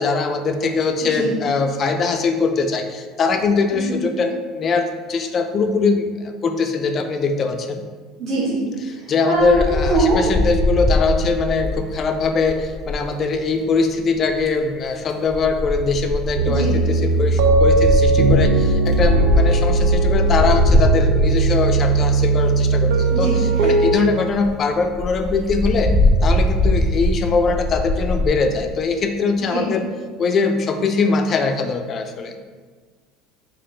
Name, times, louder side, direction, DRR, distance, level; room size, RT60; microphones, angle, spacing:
voice 1, 0.0-7.8 8.9-25.9 26.2-29.8 30.2-32.5, left 4 dB, 35° left, 6 dB, 0.3 m, -21 dB
voice 2, 8.2-8.6 9.3-10.2 16.4-16.7 23.1-23.7 29.5-29.7, right 2 dB, 50° right, -8 dB, 1.0 m, -22 dB
Wind, 9.4-13.0 14.1-14.6 15.3-22.3 22.9-23.0 23.2-23.3 23.6-23.7 24.0-24.1 24.3-24.5 24.9-28.3, left 1 dB, 5° right, 0.6 m, -21 dB
sound 1, 16.3-24.0, right 3 dB, 85° right, 0.4 m, -18 dB
4.0 x 2.5 x 3.1 m, 1.5 s
supercardioid pair, 125°, 0 cm